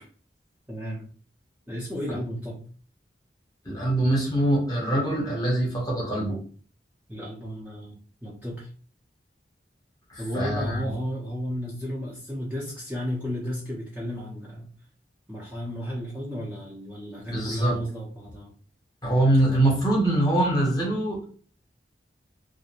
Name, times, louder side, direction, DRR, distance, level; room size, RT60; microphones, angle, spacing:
voice 1, 0.7-1.0 1.7-2.6 7.1-8.7 10.2-14.7 15.3-18.5, equal, 10° right, -7 dB, 0.6 m, -33 dB
voice 2, 3.6-6.4 10.1-10.9 17.3-17.8 19.0-21.2, right 1 dB, 20° left, -3 dB, 0.9 m, -23 dB
2.4 x 2.1 x 2.9 m, 0.42 s
head